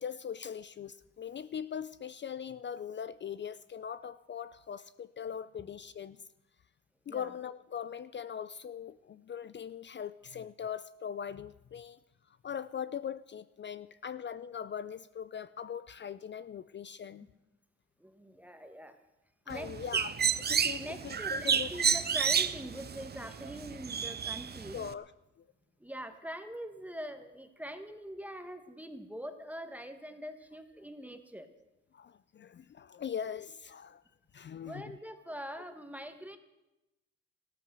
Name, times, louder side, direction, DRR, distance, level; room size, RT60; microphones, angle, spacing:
voice 1, 0.0-6.2 7.1-12.0 12.4-17.3 19.5-21.7 24.7-25.1 25.4-25.5 31.9-34.0 34.3-35.0, left 8 dB, 40° left, 15 dB, 0.5 m, -41 dB
voice 2, 18.0-19.0 19.5-19.7 20.8-24.8 25.8-31.5 34.6-36.4, equal, 5° right, 8 dB, 1.4 m, -43 dB
Bird, 19.5-24.9, right 7 dB, 35° right, 0.7 m, -31 dB
14.5 x 13.0 x 6.9 m, 0.98 s
cardioid pair, 90°, 30 cm